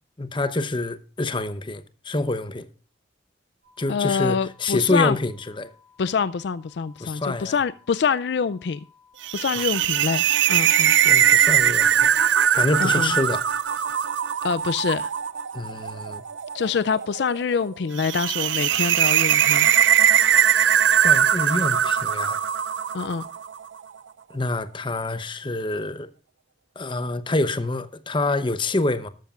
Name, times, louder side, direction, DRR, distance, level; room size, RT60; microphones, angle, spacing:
voice 1, 0.2-2.7 3.8-5.7 7.0-7.6 11.0-12.2 12.5-13.4 15.5-16.2 21.0-22.4 24.3-26.1 26.8-29.1, left 2 dB, 25° left, 0.8 m, -26 dB
sound 1, 3.6-21.6, left 6 dB, 50° right, 6.4 m, -58 dB
voice 2, 3.9-5.2 6.0-8.8 9.3-10.2 10.5-10.9 12.8-13.1 14.4-15.1 16.5-19.7 22.9-23.2, left 5 dB, 60° left, 0.4 m, -25 dB
sound 2, 9.2-23.6, right 9 dB, 75° right, 0.5 m, -21 dB
13.0 x 12.5 x 2.4 m
head